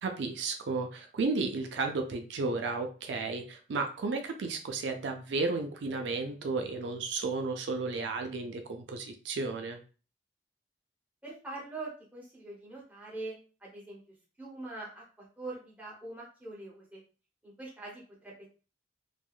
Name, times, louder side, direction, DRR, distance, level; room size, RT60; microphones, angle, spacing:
voice 1, 0.0-9.8, right 3 dB, 80° right, 5 dB, 0.4 m, -33 dB
voice 2, 11.2-17.0 17.4-18.5, right 2 dB, 10° right, -5 dB, 0.9 m, -44 dB
3.3 x 2.2 x 2.4 m, 0.36 s
head